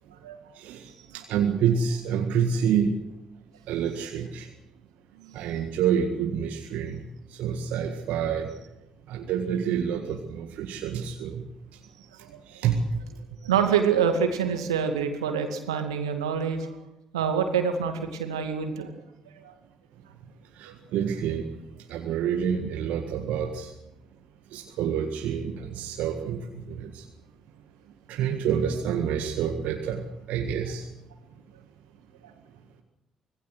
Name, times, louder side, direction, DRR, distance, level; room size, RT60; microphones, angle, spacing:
voice 1, 0.5-3.0 3.7-4.5 5.3-8.5 9.1-11.5 12.5-13.0 20.6-21.5 21.9-23.7 24.5-27.1 28.1-30.9, right 7 dB, 60° right, 4 dB, 1.8 m, -28 dB
voice 2, 13.4-16.8 17.1-18.9 19.4-19.5 32.2-32.3, right 7 dB, 80° right, 6 dB, 2.3 m, -26 dB
25.5 x 19.0 x 6.4 m, 0.93 s
figure-of-eight pair, 45°, 3 cm